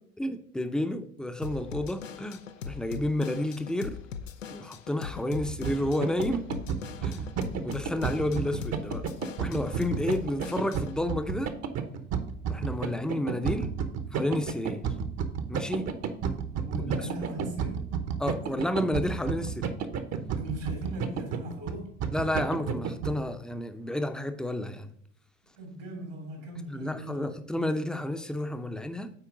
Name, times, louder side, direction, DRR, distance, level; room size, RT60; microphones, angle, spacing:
voice 1, 0.2-4.0 4.5-6.5 7.0-7.3 7.6-9.1 9.4-11.5 12.5-13.8 14.1-14.8 15.5-15.9 16.8-17.1 18.2-19.8 22.1-24.9 26.7-29.1, left 1 dB, ahead, 8 dB, 0.6 m, -31 dB
Drum kit / Drum, 1.4-11.0, left 7 dB, 90° left, 0.5 m, -41 dB
sound 1, 5.4-23.1, right 7 dB, 45° right, 0.9 m, -32 dB
voice 2, 16.6-17.9 20.4-22.0 25.6-27.3, right 1 dB, 80° right, 0 dB, 2.9 m, -39 dB
8.8 x 4.4 x 3.8 m, 0.67 s
figure-of-eight pair, 65°, 37 cm